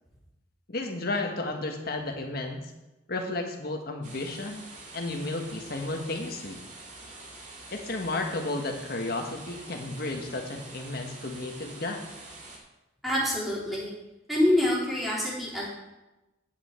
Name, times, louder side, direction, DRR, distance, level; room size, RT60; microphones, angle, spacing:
voice 1, 0.7-2.6 3.1-4.6 4.9-6.6 7.7-12.0, left 2 dB, 55° left, 3 dB, 1.5 m, -33 dB
sound 1, 4.0-12.6, right 2 dB, 40° right, 2.1 m, -46 dB
voice 2, 13.0-13.9 14.3-15.7, left 1 dB, ahead, -7 dB, 3.5 m, -26 dB
10.0 x 9.0 x 4.5 m, 1.0 s
head